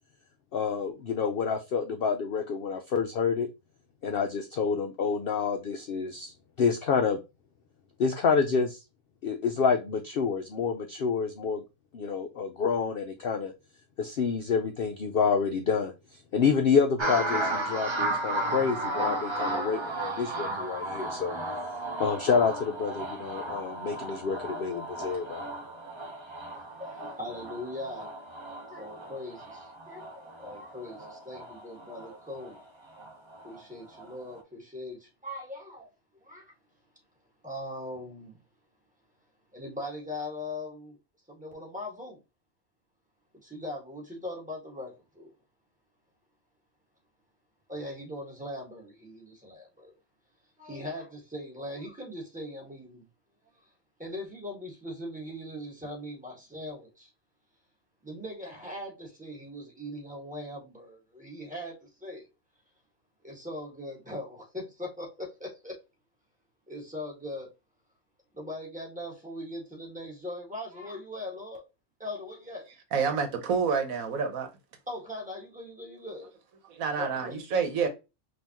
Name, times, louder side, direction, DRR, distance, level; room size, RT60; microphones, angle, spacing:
voice 1, 0.5-3.5 4.0-7.2 8.0-8.8 9.2-11.6 11.9-13.5 14.0-15.9 16.3-21.4 22.0-25.4, left 5 dB, 65° left, 0.6 m, -28 dB
sound 1, 17.0-33.6 34.0-34.4, right 2 dB, 25° right, 0.7 m, -35 dB
voice 2, 26.5-28.1 28.5-32.6 33.4-35.9 36.2-36.5 37.4-38.4 39.5-41.0 41.3-42.2 43.4-45.3 47.7-49.9 50.6-53.1 53.6-53.7 54.0-57.1 58.0-62.3 63.2-65.8 66.7-67.5 68.3-71.6 72.0-72.6 74.9-76.3 77.0-77.4, left 1 dB, 5° right, 1.7 m, -40 dB
voice 3, 72.9-74.5 76.7-77.9, right 6 dB, 75° right, 1.3 m, -28 dB
5.5 x 2.9 x 2.9 m
omnidirectional pair, 1.5 m